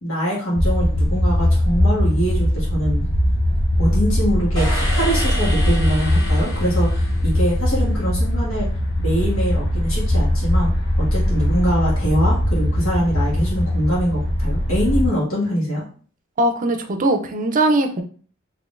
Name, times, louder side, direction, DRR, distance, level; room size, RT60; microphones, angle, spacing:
voice 1, 0.0-3.0 3.8-8.7 9.0-10.8 11.1-15.8, equal, 85° left, -5 dB, 1.5 m, -23 dB
sound 1, 0.5-15.1, left 1 dB, 60° left, 0.8 m, -20 dB
sound 2, 4.5-7.7, equal, 20° left, 1.5 m, -30 dB
voice 2, 16.4-18.0, right 1 dB, 40° right, 6 dB, 0.5 m, -20 dB
3.7 x 2.9 x 2.5 m, 0.43 s
head